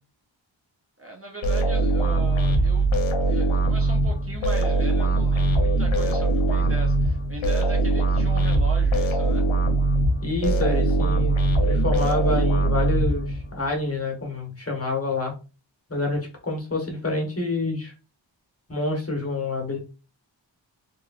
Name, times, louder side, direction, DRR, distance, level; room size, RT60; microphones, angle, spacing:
voice 1, 1.0-2.9 3.3-9.5, right 3 dB, 30° right, 1 dB, 0.6 m, -38 dB
sound 1, 1.4-13.7, right 2 dB, 80° left, 0.7 m, -22 dB
voice 2, 10.2-15.3 15.9-17.9 18.7-19.8, left 2 dB, 30° left, 1 dB, 1.1 m, -27 dB
3.1 x 2.6 x 2.4 m, 0.32 s
wide cardioid pair, 80°, 47 cm